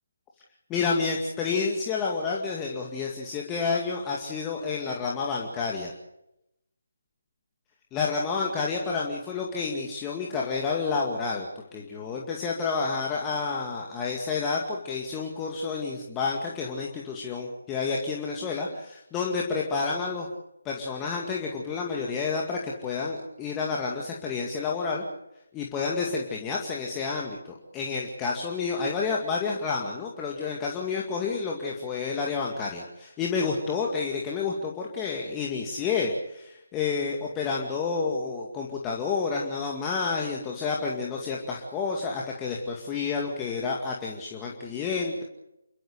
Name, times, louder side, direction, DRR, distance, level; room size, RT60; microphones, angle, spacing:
voice 1, 0.7-5.9 7.9-20.3 20.6-25.0 25.5-45.2, left 4 dB, 15° left, -2 dB, 2.2 m, -30 dB
28.5 x 13.5 x 8.3 m, 0.86 s
figure-of-eight pair, 150°, 0 cm